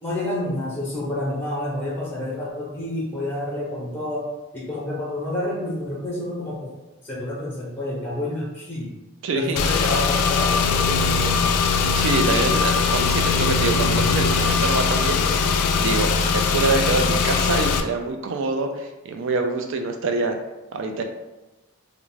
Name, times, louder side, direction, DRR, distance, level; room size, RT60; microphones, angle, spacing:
voice 1, 0.0-6.7 7.0-9.0 9.3-11.5, left 1 dB, 10° left, -6 dB, 0.7 m, -29 dB
voice 2, 9.2-9.6 11.9-15.2 15.8-20.4 20.7-21.0, right 3 dB, 60° right, 5 dB, 0.3 m, -25 dB
Car / Engine, 9.6-17.8, left 5 dB, 90° left, 0.3 m, -21 dB
sound 1, 10.7-15.7, right 1 dB, 75° right, 0.9 m, -37 dB
2.3 x 2.1 x 3.9 m, 1.0 s
head